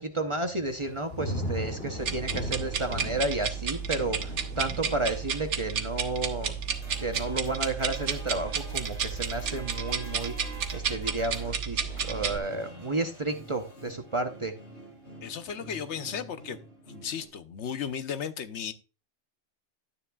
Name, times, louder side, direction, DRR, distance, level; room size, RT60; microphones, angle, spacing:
voice 1, 0.0-6.6 7.0-14.6, right 2 dB, 30° right, 0.8 m, -32 dB
Thunder / Rain, 0.7-11.6 12.0-12.5, equal, 55° left, 2.9 m, -40 dB
sound 1, 2.0-12.4, right 7 dB, 70° right, 1.2 m, -32 dB
sound 2, 6.7-17.3, right 1 dB, 90° left, 4.4 m, -46 dB
voice 2, 15.2-16.6 16.9-18.7, left 7 dB, 70° left, 1.0 m, -35 dB
11.5 x 9.6 x 2.3 m
omnidirectional pair, 1.2 m